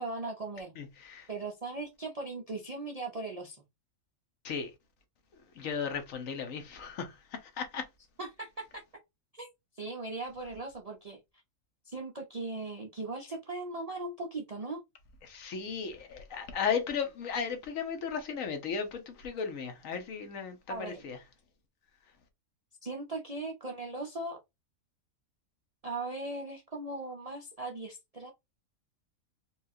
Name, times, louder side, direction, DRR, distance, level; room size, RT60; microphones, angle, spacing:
voice 1, 0.0-0.8 1.3-3.6 8.2-8.8 9.3-9.5 9.7-11.2 11.9-14.8 20.7-21.1 22.8-24.4 25.8-28.3, right 2 dB, 50° right, 0.4 m, -38 dB
voice 2, 0.8-1.3 4.4-4.7 5.6-7.2 7.4-7.8 15.2-21.2, left 6 dB, 70° left, 1.2 m, -35 dB
4.4 x 2.4 x 2.6 m
omnidirectional pair, 1.5 m